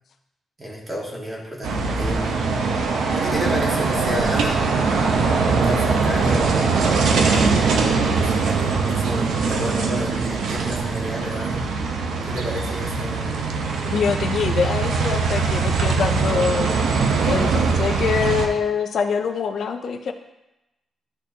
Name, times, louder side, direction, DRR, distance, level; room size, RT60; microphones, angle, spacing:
voice 1, 0.6-2.5 3.2-4.6 5.6-7.6 8.2-11.6 12.3-13.4, equal, 20° right, -4 dB, 1.7 m, -31 dB
sound 1, 1.6-18.5, right 4 dB, 85° right, 0.8 m, -21 dB
voice 2, 13.8-16.8 17.2-20.1, left 6 dB, 55° left, 6 dB, 0.4 m, -24 dB
12.0 x 4.3 x 2.8 m, 0.96 s
wide cardioid pair, 155°, 0 cm